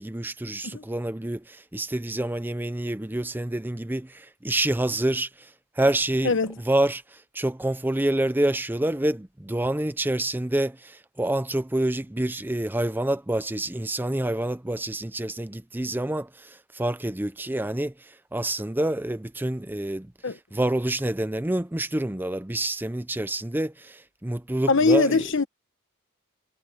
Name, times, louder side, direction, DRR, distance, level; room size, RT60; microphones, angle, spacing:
voice 1, 0.0-5.5 5.8-6.4 6.6-20.1 20.5-25.3, right 1 dB, 10° right, 0.5 m, -27 dB
voice 2, 24.7-25.5, left 3 dB, 60° left, 1.2 m, -21 dB
head